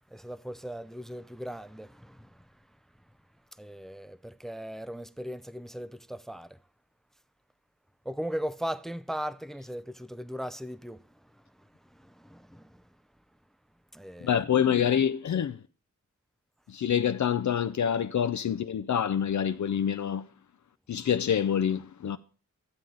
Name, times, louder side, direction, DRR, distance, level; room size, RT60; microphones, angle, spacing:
voice 1, 0.0-2.5 3.6-6.6 8.1-11.0 11.9-12.8 13.9-14.4, equal, ahead, 0.5 m, -38 dB
voice 2, 14.2-15.6 16.7-20.3 20.9-22.2, left 8 dB, 65° left, 0.5 m, -26 dB
13.0 x 7.7 x 3.9 m
cardioid pair, 60°, 31 cm